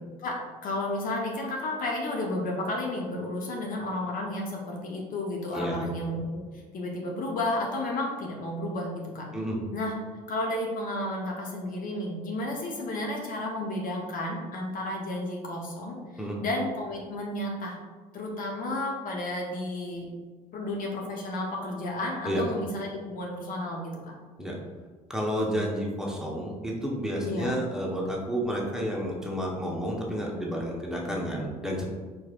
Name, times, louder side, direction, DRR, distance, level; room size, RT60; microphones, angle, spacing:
voice 1, 0.6-6.4 6.7-9.3 9.7-9.9 10.3-17.8 18.1-20.1 20.5-24.1 27.2-27.6, left 1 dB, 45° left, 0 dB, 0.9 m, -32 dB
voice 2, 25.1-31.9, equal, 5° right, -2 dB, 1.0 m, -30 dB
4.7 x 4.4 x 2.5 m, 1.4 s
figure-of-eight pair, 60°, 19 cm